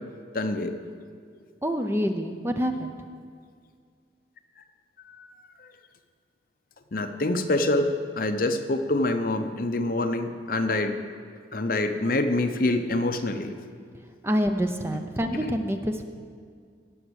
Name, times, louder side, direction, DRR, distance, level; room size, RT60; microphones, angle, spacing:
voice 1, 0.3-0.7 5.1-5.3 6.9-11.0 11.5-13.7, left 2 dB, 50° left, 7 dB, 0.7 m, -26 dB
voice 2, 1.6-3.0 14.2-16.0, equal, 15° right, 6 dB, 0.5 m, -27 dB
17.0 x 6.1 x 6.4 m, 2.1 s
head